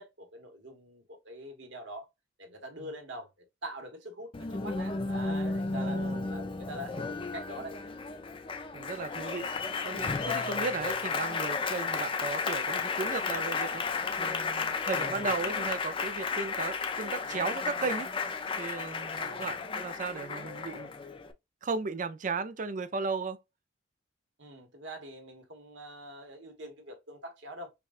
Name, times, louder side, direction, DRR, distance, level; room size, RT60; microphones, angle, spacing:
voice 1, 0.0-2.1 2.4-3.3 3.6-6.0 6.3-7.8 19.1-19.5 24.4-27.7, right 1 dB, 60° right, 1.2 m, -44 dB
Applause, 4.3-21.3, left 4 dB, 25° left, 0.4 m, -33 dB
voice 2, 5.7-6.2 8.7-9.5 9.8-13.8 14.2-18.1 18.6-20.9 21.6-23.4, right 4 dB, 40° right, 0.4 m, -35 dB
5.9 x 2.2 x 2.4 m
head